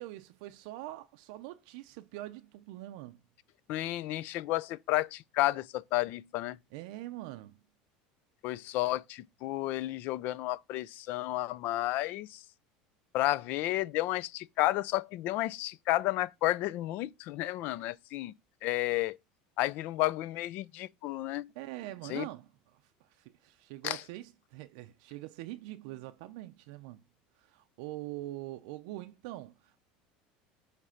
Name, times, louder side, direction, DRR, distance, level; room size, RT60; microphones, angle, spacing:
voice 1, 0.0-3.2 6.7-7.6 21.6-27.0 27.4-29.9, right 16 dB, 75° right, 0.5 m, -44 dB
voice 2, 3.7-6.6 8.4-12.4 13.1-18.3 18.6-19.2 19.6-21.5 22.1-22.3 23.8-24.0, left 16 dB, 60° left, 0.4 m, -32 dB
7.3 x 3.3 x 5.6 m
supercardioid pair, 130°, 4 cm